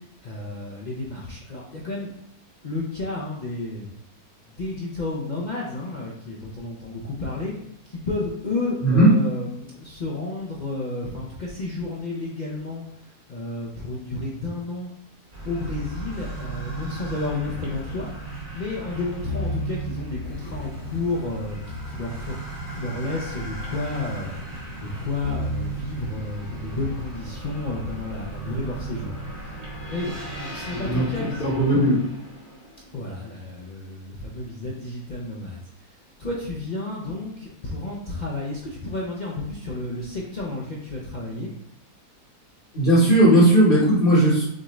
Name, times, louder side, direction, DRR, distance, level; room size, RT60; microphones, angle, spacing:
voice 1, 0.2-2.1 2.6-3.9 4.5-7.5 7.8-14.9 15.4-18.1 18.5-22.3 22.7-24.4 24.8-29.6 29.9-31.9 32.9-35.6 36.2-41.5, left 2 dB, 50° left, -4 dB, 0.5 m, -31 dB
voice 2, 8.8-9.1 30.7-31.1 31.4-31.9 42.7-44.4, right 1 dB, 35° left, -8 dB, 1.3 m, -17 dB
sound 1, 15.3-33.2, right 1 dB, 45° right, 1.3 m, -35 dB
6.3 x 2.5 x 3.1 m, 0.74 s
omnidirectional pair, 1.7 m